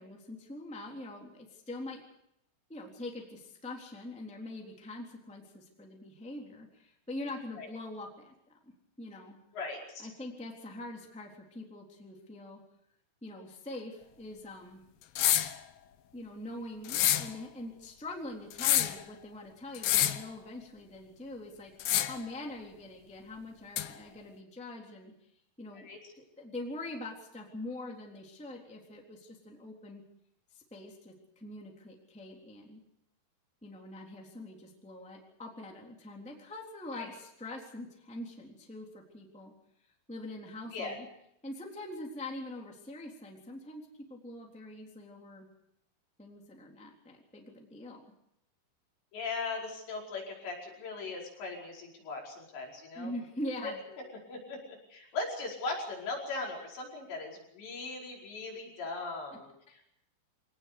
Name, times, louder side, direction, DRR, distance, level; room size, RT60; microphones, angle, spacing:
voice 1, 0.0-2.0 2.7-8.3 8.6-8.7 9.0-9.4 10.0-12.6 13.2-14.8 16.1-21.7 22.0-25.1 25.6-25.9 26.2-30.0 30.5-32.8 33.6-39.5 40.1-41.1 41.4-45.5 46.2-48.0 52.9-53.8, left 1 dB, ahead, 0 dB, 2.5 m, -43 dB
voice 2, 9.5-10.1 25.8-26.0 36.9-37.1 40.7-41.0 49.1-53.1 53.6-53.7 54.0-59.8, left 3 dB, 65° left, -2 dB, 7.2 m, -39 dB
sound 1, 15.2-15.6 16.8-17.3 18.5-19.0 19.7-20.2 21.8-22.2 23.8-23.9, left 12 dB, 90° left, 1.9 m, -27 dB
24.5 x 18.5 x 6.8 m, 0.78 s
omnidirectional pair, 5.5 m